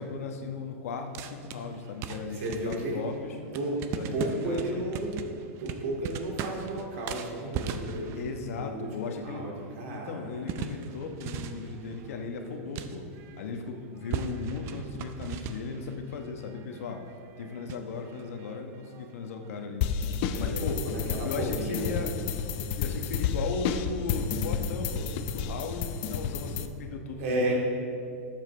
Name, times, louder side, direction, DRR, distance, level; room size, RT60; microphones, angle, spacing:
voice 1, 0.0-3.4 4.0-4.9 8.1-9.5 9.9-13.0 13.4-17.0 17.4-19.8 20.4-20.8 21.2-22.1 22.8-27.5, left 4 dB, 75° left, 4 dB, 1.1 m, -36 dB
sound 1, 1.1-13.6 14.0-19.6, right 6 dB, 35° right, 0.5 m, -40 dB
voice 2, 2.4-3.0 3.5-3.8 4.1-8.2 8.5-10.2 20.3-22.0 27.2-27.5, right 2 dB, 65° right, -2 dB, 2.5 m, -33 dB
sound 2, 19.8-26.7, left 7 dB, 45° left, 0.5 m, -31 dB
12.5 x 7.4 x 3.3 m, 2.3 s
supercardioid pair, 150°, 8 cm